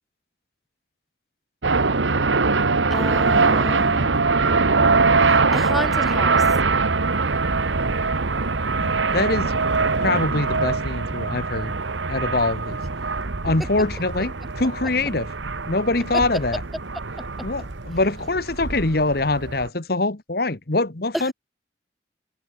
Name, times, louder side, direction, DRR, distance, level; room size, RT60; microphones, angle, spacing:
sound 1, 1.6-19.7, right 4 dB, 80° right, 1.3 m, -22 dB
voice 1, 2.9-4.2 5.2-6.6 16.1-16.3 17.4-17.5 21.1-21.3, equal, ahead, 0.9 m, -30 dB
voice 2, 8.7-9.5 10.0-11.7 12.1-12.8 13.4-15.3 15.7-16.6 17.4-21.3, left 2 dB, 55° left, 1.4 m, -24 dB
head